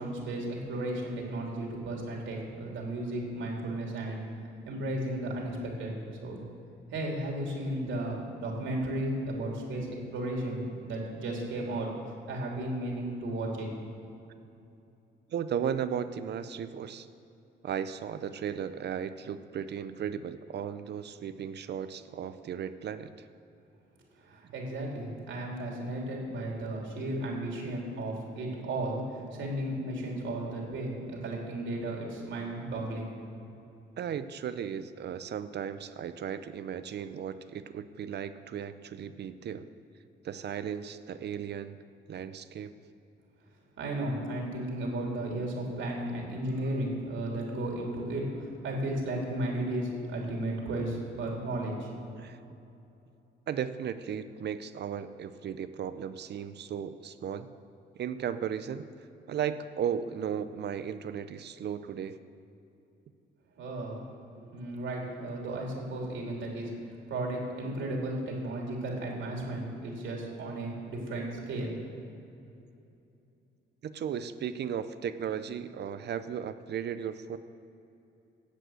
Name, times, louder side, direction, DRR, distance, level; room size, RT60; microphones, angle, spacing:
voice 1, 0.0-4.2 4.6-5.9 6.2-6.4 6.9-11.9 12.3-13.7 24.2-29.0 29.3-33.2 43.8-51.9 63.6-64.0 64.3-66.7 67.1-71.7, right 1 dB, 75° right, -1 dB, 3.2 m, -34 dB
voice 2, 15.3-17.1 17.6-23.3 34.0-39.7 40.2-41.8 42.1-42.7 52.1-52.4 53.5-57.5 57.9-58.9 59.3-62.2 73.8-77.4, right 8 dB, 60° right, 11 dB, 0.6 m, -35 dB
11.5 x 7.7 x 7.8 m, 2.8 s
cardioid pair, 90°, 20 cm